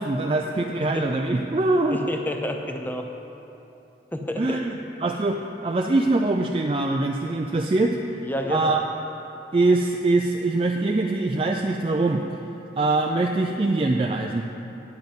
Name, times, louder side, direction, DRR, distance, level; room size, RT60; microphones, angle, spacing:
voice 1, 0.0-2.0 4.4-8.2 8.5-8.8 9.5-12.2 12.8-14.5, right 2 dB, 30° right, 2 dB, 0.3 m, -23 dB
voice 2, 1.9-3.1 4.1-4.6 8.2-8.7, left 1 dB, 10° left, 3 dB, 0.6 m, -29 dB
9.4 x 9.1 x 5.3 m, 3.0 s
head